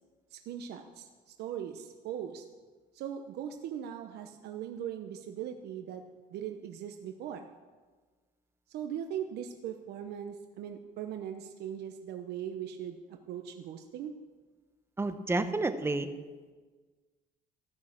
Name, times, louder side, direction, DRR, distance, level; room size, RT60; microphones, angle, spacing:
voice 1, 0.3-2.4 2.9-6.0 6.3-7.5 8.7-13.0 13.3-14.1, right 9 dB, 75° right, 6 dB, 0.8 m, -39 dB
voice 2, 15.0-16.1, right 2 dB, 15° right, 9 dB, 0.9 m, -30 dB
15.0 x 6.4 x 7.3 m, 1.4 s
cardioid pair, 110°, 17 cm